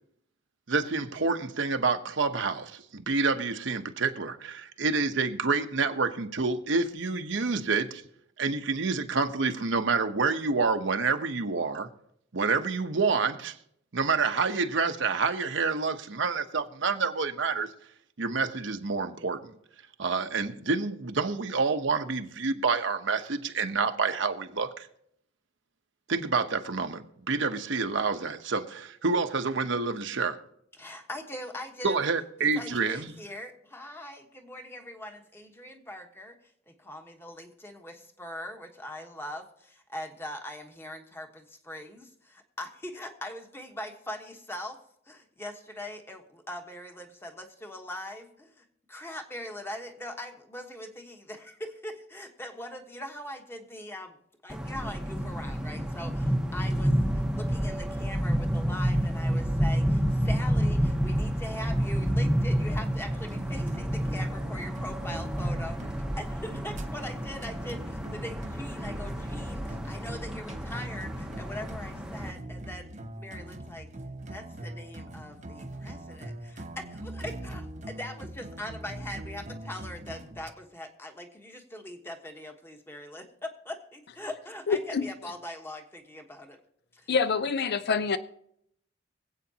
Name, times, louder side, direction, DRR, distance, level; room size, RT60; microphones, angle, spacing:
voice 1, 0.7-8.0 8.4-11.9 12.3-13.5 13.9-17.7 18.2-19.5 20.0-24.9 26.1-30.4 31.8-33.1, right 4 dB, 65° right, 0.9 m, -28 dB
voice 2, 30.8-32.0 32.5-36.4 36.7-44.8 45.1-54.2 54.4-73.9 74.3-86.6 86.9-87.1, left 1 dB, 10° left, 1.2 m, -41 dB
sound 1, 54.5-72.3, equal, 5° right, 0.8 m, -29 dB
sound 2, 63.3-80.5, right 1 dB, 40° right, 0.9 m, -42 dB
voice 3, 84.7-85.1 87.1-88.2, left 5 dB, 55° left, 0.5 m, -26 dB
25.0 x 8.4 x 2.8 m
head